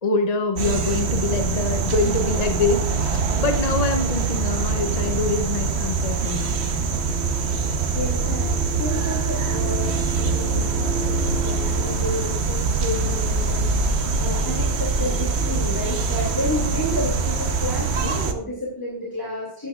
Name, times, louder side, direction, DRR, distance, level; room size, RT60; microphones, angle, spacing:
voice 1, 0.0-6.8, left 3 dB, 40° left, 6 dB, 0.7 m, -25 dB
sound 1, 0.6-18.3, right 4 dB, 80° right, 1.2 m, -23 dB
voice 2, 7.3-13.9 14.2-19.7, left 1 dB, 20° left, -4 dB, 2.6 m, -31 dB
12.5 x 11.5 x 2.4 m, 0.71 s
omnidirectional pair, 1.1 m